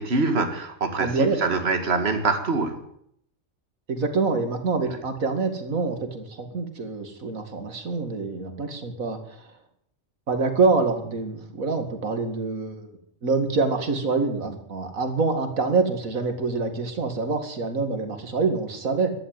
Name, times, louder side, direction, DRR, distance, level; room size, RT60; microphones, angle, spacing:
voice 1, 0.0-2.8 4.8-5.0, right 3 dB, 50° right, 7 dB, 2.2 m, -24 dB
voice 2, 1.0-1.4 3.9-9.5 10.3-12.9 13.2-19.1, right 4 dB, 75° right, 7 dB, 2.6 m, -26 dB
14.0 x 11.0 x 9.4 m, 0.70 s
omnidirectional pair, 1.4 m